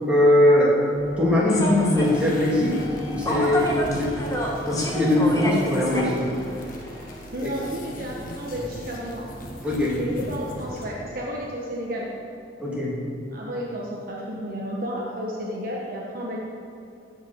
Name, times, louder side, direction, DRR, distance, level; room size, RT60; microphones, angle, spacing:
voice 1, 0.1-0.8 1.2-2.8 3.1-4.2 4.7-6.2 7.4-7.5 9.6-10.0 12.6-13.1, left 1 dB, 5° right, -6 dB, 2.8 m, -20 dB
sound 1, 0.9-10.9, equal, 70° right, 1.6 m, -43 dB
Human voice / Subway metro underground, 1.5-7.2, equal, 20° left, 1.4 m, -30 dB
sound 2, 2.0-11.0, equal, 45° left, 1.4 m, -40 dB
voice 2, 7.3-9.3 10.0-12.1 13.3-16.4, equal, 50° right, -3 dB, 1.3 m, -32 dB
15.5 x 5.9 x 6.2 m, 2.7 s
head